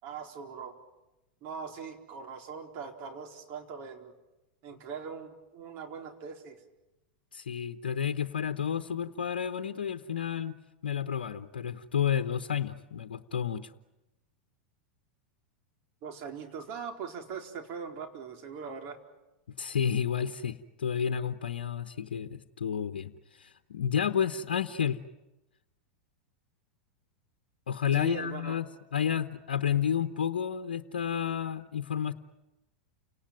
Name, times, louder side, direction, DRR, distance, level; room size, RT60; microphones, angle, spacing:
voice 1, 0.0-0.8 1.4-4.1 4.6-6.6 16.0-19.0 27.9-28.6, right 6 dB, 50° right, 3 dB, 4.3 m, -41 dB
voice 2, 7.3-10.5 10.8-13.7 19.6-25.0 27.7-28.7 28.9-32.1, left 8 dB, 80° left, 9 dB, 1.0 m, -31 dB
30.0 x 18.5 x 9.2 m, 1.0 s
hypercardioid pair, 95°, 5 cm